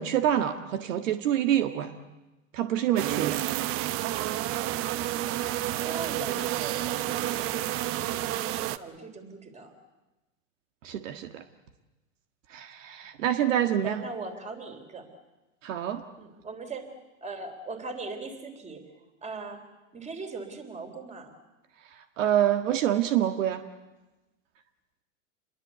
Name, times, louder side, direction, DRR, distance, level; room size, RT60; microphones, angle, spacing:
voice 1, 0.0-2.0 2.5-3.4 10.8-11.4 12.5-14.0 15.6-16.0 22.2-23.6, right 11 dB, 65° right, 7 dB, 1.8 m, -26 dB
sound 1, 3.0-8.8, right 14 dB, 30° right, 0.8 m, -30 dB
voice 2, 5.8-9.7 13.6-15.1 16.2-16.9 17.2-18.8 19.2-19.6 19.9-21.3, right 3 dB, 15° right, 7 dB, 3.7 m, -40 dB
28.0 x 22.0 x 8.2 m, 1.1 s
hypercardioid pair, 130°, 41 cm